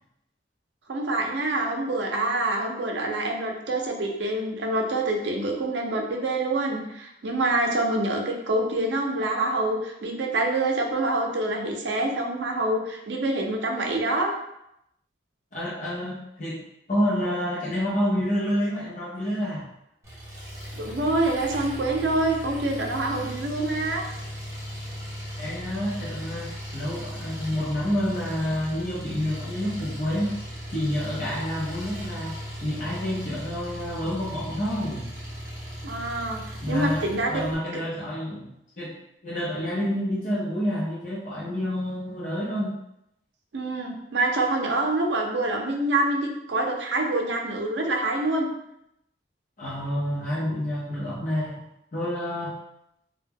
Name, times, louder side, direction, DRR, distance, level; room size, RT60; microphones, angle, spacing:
voice 1, 0.9-14.3 20.7-24.0 35.8-37.4 43.5-48.5, right 2 dB, 75° right, 2 dB, 0.5 m, -26 dB
voice 2, 15.5-16.6 16.9-19.6 25.4-30.3 30.7-35.1 36.6-38.5 38.8-38.9 39.2-42.7 49.6-51.6 51.9-52.5, equal, 45° left, -7 dB, 0.6 m, -28 dB
Engine, 20.0-37.6, equal, 15° right, 0.7 m, -37 dB
2.2 x 2.1 x 3.4 m, 0.81 s
head